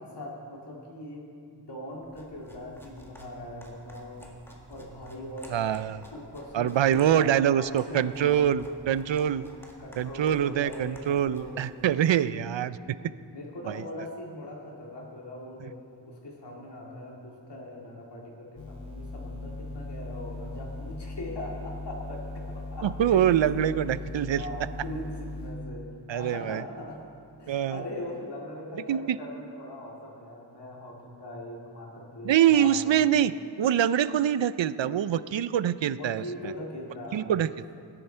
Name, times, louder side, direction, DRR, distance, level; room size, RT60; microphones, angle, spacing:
voice 1, 0.0-4.3 4.7-5.6 6.1-7.3 7.6-8.4 9.8-11.8 13.3-15.8 16.0-23.7 24.4-27.0 27.4-33.0 35.9-37.3, left 1 dB, 60° left, -3 dB, 2.3 m, -40 dB
sound 1, 2.0-12.3, equal, 5° left, 1.8 m, -51 dB
voice 2, 5.5-6.0 6.5-9.4 10.0-12.8 13.7-13.8 22.8-24.4 26.1-26.6 27.5-27.8 28.9-29.2 32.2-33.3 33.6-36.5 37.1-37.5, right 10 dB, 75° right, 15 dB, 0.5 m, -24 dB
sound 2, 18.6-25.6, left 2 dB, 80° left, 2.0 m, -38 dB
18.5 x 10.5 x 4.4 m, 2.4 s
wide cardioid pair, 90°, 45 cm